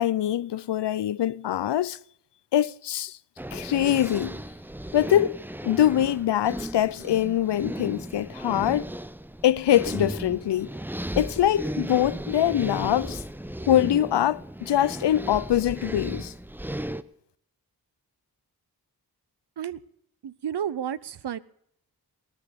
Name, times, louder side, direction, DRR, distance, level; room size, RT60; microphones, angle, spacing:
voice 1, 0.0-2.0 2.5-3.2 3.5-4.4 4.9-5.4 5.6-8.9 9.4-10.7 11.2-13.2 13.7-16.3, left 11 dB, 90° left, 0.5 m, -23 dB
sound 1, 3.4-17.0, right 1 dB, 5° right, 0.7 m, -35 dB
voice 2, 20.2-21.4, right 9 dB, 80° right, 0.7 m, -31 dB
18.0 x 9.8 x 5.2 m
cardioid pair, 50°, 40 cm